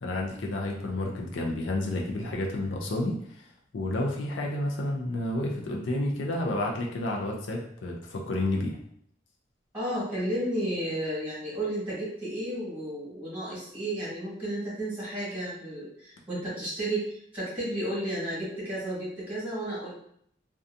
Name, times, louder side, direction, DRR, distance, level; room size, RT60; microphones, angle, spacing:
voice 1, 0.0-3.4 3.7-8.8, left 1 dB, 75° left, -1 dB, 0.4 m, -30 dB
voice 2, 9.7-19.9, right 1 dB, 10° right, -8 dB, 1.1 m, -32 dB
2.6 x 2.2 x 2.5 m, 0.68 s
head